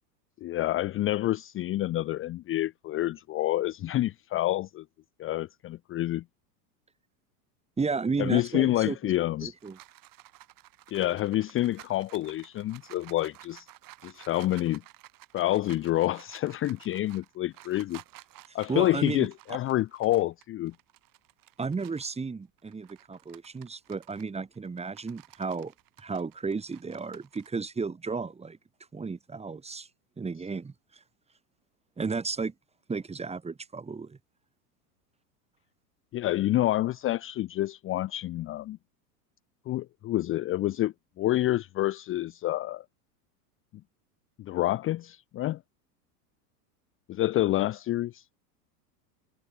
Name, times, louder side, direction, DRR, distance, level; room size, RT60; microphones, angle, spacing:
voice 1, 0.4-4.8 5.2-6.2 8.2-9.5 10.9-13.7 14.0-14.8 15.3-18.0 18.5-20.7 36.1-38.8 39.7-42.8 44.4-45.6 47.1-48.2, left 15 dB, 25° left, 0.7 m, -28 dB
voice 2, 7.8-9.1 9.4-9.8 18.5-19.6 21.6-25.7 26.0-28.6 28.9-29.9 30.2-30.7 32.0-32.5 32.9-34.2, right 4 dB, 10° right, 2.2 m, -33 dB
sound 1, 9.2-22.1 22.6-27.5, right 16 dB, 40° right, 6.6 m, -53 dB
hypercardioid pair, 110°, 50 cm